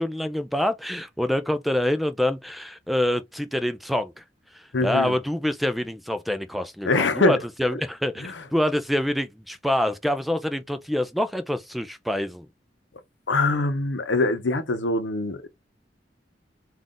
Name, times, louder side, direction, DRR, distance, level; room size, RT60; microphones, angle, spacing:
voice 1, 0.0-4.2 4.5-12.5, left 1 dB, ahead, 0.3 m, -26 dB
voice 2, 4.7-5.2 6.8-7.4 8.2-8.3 13.3-15.5, left 3 dB, 80° left, 0.8 m, -23 dB
3.7 x 2.4 x 3.8 m
head